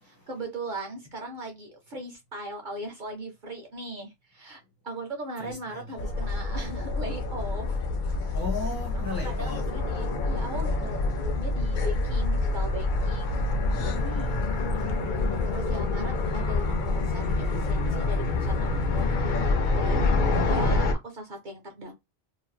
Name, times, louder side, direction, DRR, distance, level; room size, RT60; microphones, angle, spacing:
voice 1, 0.0-7.8 8.9-13.4 15.4-21.9, right 1 dB, 50° right, 0.8 m, -39 dB
voice 2, 5.4-5.9 8.3-9.7 13.7-14.9, left 3 dB, 20° left, 1.1 m, -37 dB
sound 1, 6.0-20.9, left 3 dB, 55° left, 0.6 m, -27 dB
2.9 x 2.5 x 2.3 m
omnidirectional pair, 1.1 m